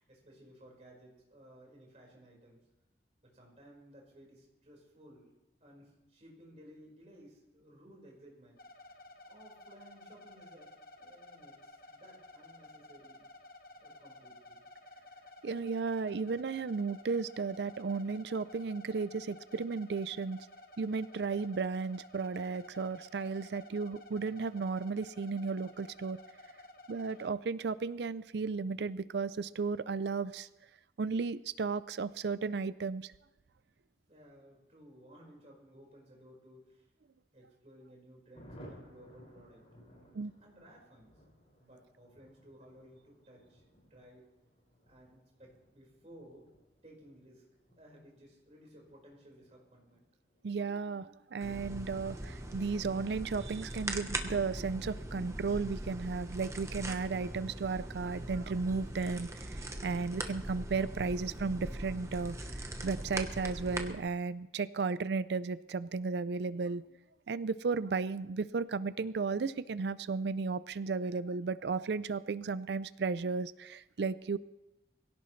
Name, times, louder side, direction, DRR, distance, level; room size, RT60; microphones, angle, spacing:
voice 1, 0.0-2.7 3.2-5.3 5.6-8.6 9.2-13.3 13.8-14.6 34.1-36.9 37.3-41.1 41.6-43.6 43.9-44.2 44.9-46.5 46.8-47.4 47.8-50.1, equal, 40° right, -2 dB, 4.8 m, -57 dB
sound 1, 8.6-27.3, left 1 dB, 55° left, 1.3 m, -54 dB
voice 2, 15.4-20.4 20.8-26.2 26.9-30.5 31.0-33.1 40.1-40.3 50.4-66.8 67.3-74.4, right 4 dB, 75° right, 16 dB, 0.4 m, -34 dB
Thunder, 38.3-54.5 54.7-54.8 55.1-55.3 55.5-55.9, equal, 35° left, 5.8 m, -60 dB
sound 2, 51.4-63.9, right 1 dB, 15° right, 1.0 m, -41 dB
22.0 x 16.5 x 3.2 m, 0.96 s
head